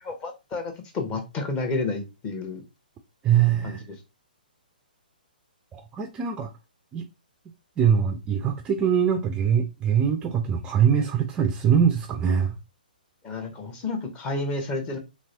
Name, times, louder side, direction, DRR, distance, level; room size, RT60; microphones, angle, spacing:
voice 1, 0.0-2.6 3.6-3.8 13.2-15.0, left 3 dB, 20° left, 0.9 m, -30 dB
voice 2, 3.2-3.8 5.7-6.5 6.9-7.0 7.8-12.5, right 8 dB, 20° right, 0.4 m, -22 dB
3.0 x 3.0 x 2.7 m
figure-of-eight pair, 125°, 5 cm